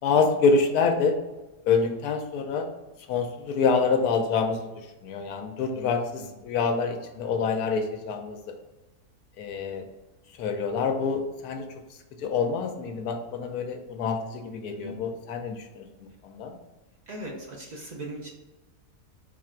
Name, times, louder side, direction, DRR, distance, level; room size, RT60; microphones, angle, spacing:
voice 1, 0.0-1.1 1.7-2.7 3.1-8.4 9.4-9.8 10.4-11.7 12.2-16.5, left 5 dB, 90° left, 5 dB, 1.2 m, -26 dB
voice 2, 17.1-18.3, right 1 dB, 45° right, -1 dB, 0.5 m, -39 dB
4.3 x 2.5 x 4.4 m, 1.1 s
omnidirectional pair, 1.6 m